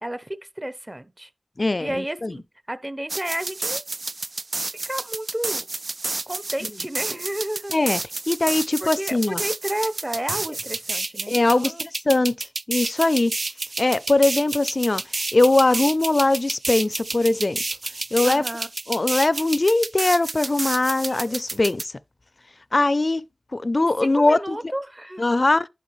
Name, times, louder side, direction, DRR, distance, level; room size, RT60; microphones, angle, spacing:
voice 1, 0.0-1.3 1.8-3.8 4.8-5.7 6.3-7.8 8.8-11.9 18.2-18.7 21.1-21.8 24.0-25.3, right 1 dB, 20° right, 0.9 m, -32 dB
voice 2, 1.6-2.4 7.7-8.0 8.3-9.4 11.3-13.3 13.8-15.0 15.3-17.6 18.1-18.4 18.9-21.8 22.7-23.2 23.5-24.6 25.2-25.7, left 2 dB, 45° left, 0.5 m, -21 dB
sound 1, 3.1-21.8, right 3 dB, 55° right, 0.4 m, -30 dB
11.0 x 4.6 x 3.2 m
wide cardioid pair, 50°, 0 cm